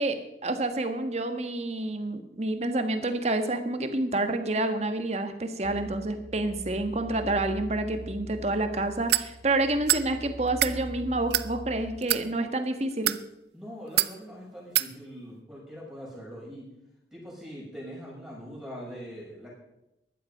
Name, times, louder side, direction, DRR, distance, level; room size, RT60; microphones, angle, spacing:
voice 1, 0.0-13.1, right 2 dB, 35° right, 8 dB, 1.4 m, -28 dB
sound 1, 5.6-12.0, right 1 dB, 80° right, 1.7 m, -42 dB
sound 2, 9.1-9.3 9.9-10.1 10.5-10.7 11.3-11.5 12.0-12.2 12.9-13.2 14.0-14.1 14.7-14.9, right 14 dB, 65° right, 0.6 m, -24 dB
voice 2, 13.5-16.7 17.1-19.5, equal, 5° right, -5 dB, 6.6 m, -42 dB
15.0 x 11.5 x 5.4 m, 0.88 s
head